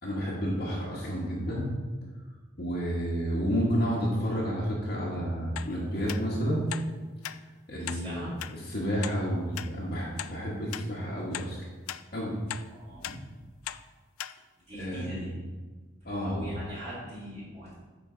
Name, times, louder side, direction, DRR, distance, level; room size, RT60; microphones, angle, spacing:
voice 1, 0.0-1.7 2.6-6.7 7.7-11.6 12.1-12.4 14.7-15.3 16.0-16.5, equal, 50° left, -6 dB, 1.3 m, -30 dB
sound 1, 5.6-5.7 6.1-6.2 6.7-6.9 7.2-7.4 7.9-8.0 8.4-8.5 9.0-9.2 9.6-9.7 10.2-10.3 10.7-10.9 11.3-11.5 11.9-12.0 12.5-12.7 13.0-13.2 13.7-13.8 14.2-14.3 14.8-14.9, left 12 dB, 85° left, 0.3 m, -37 dB
voice 2, 7.9-8.3 12.7-13.0 14.7-15.3 16.2-17.7, equal, 30° right, -10 dB, 2.3 m, -40 dB
9.1 x 4.5 x 3.8 m, 1.4 s
head